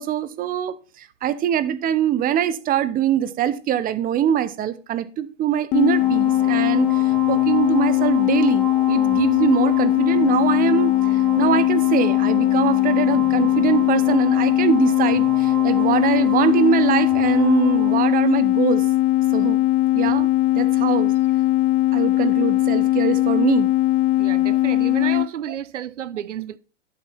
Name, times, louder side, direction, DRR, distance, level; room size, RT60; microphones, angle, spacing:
voice 1, 0.0-18.8 19.3-19.6 19.9-20.3 20.5-21.1 21.9-23.7, right 10 dB, 25° right, 0.9 m, -23 dB
sound 1, 5.7-25.3, left 16 dB, 25° left, 0.5 m, -19 dB
sound 2, 6.0-18.0, right 2 dB, 5° right, 2.7 m, -35 dB
voice 2, 24.2-26.6, right 10 dB, 80° right, 0.7 m, -31 dB
11.5 x 7.1 x 4.3 m
hypercardioid pair, 110°, 36 cm